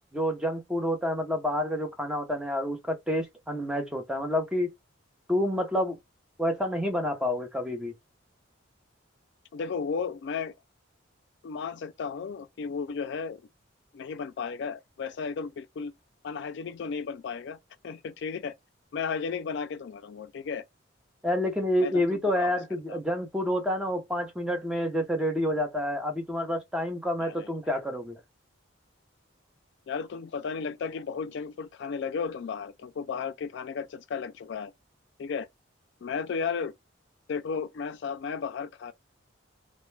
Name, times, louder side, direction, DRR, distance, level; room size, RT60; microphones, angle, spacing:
voice 1, 0.1-4.7 5.3-6.0 6.4-7.9 21.2-28.2, left 1 dB, 5° right, 0.5 m, -28 dB
voice 2, 9.5-10.5 11.4-13.4 13.9-15.9 16.2-17.6 17.8-18.5 18.9-20.6 21.8-22.5 22.9-23.0 27.2-27.8 29.9-34.7 35.2-35.5 36.0-36.7 37.3-38.9, left 5 dB, 60° left, 0.3 m, -34 dB
2.2 x 2.1 x 3.1 m
head